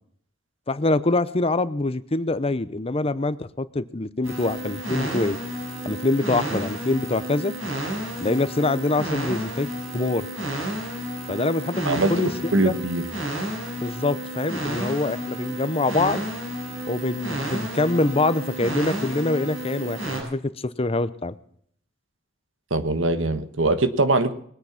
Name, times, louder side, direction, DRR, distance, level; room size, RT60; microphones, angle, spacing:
voice 1, 0.7-5.4 5.8-7.5 8.2-10.3 11.3-12.3 12.6-12.7 13.8-16.2 16.9-21.4, left 2 dB, 30° left, 14 dB, 0.8 m, -24 dB
sound 1, 4.2-20.2, right 1 dB, 90° right, 6.4 m, -31 dB
voice 2, 11.8-13.0 22.7-24.3, right 2 dB, 70° right, 10 dB, 1.4 m, -22 dB
21.0 x 9.7 x 5.9 m, 0.64 s
head